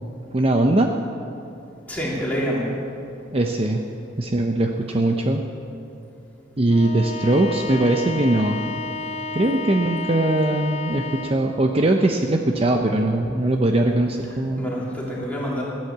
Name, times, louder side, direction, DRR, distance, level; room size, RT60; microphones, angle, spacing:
voice 1, 0.3-0.9 3.3-3.8 4.2-5.4 6.6-8.6 9.3-14.6, right 1 dB, 30° right, 3 dB, 0.6 m, -20 dB
voice 2, 1.9-2.7 14.6-15.6, equal, 10° left, -6 dB, 3.3 m, -26 dB
Bowed string instrument, 6.7-11.5, left 3 dB, 35° left, 0.8 m, -32 dB
16.0 x 9.5 x 7.4 m, 2.7 s
head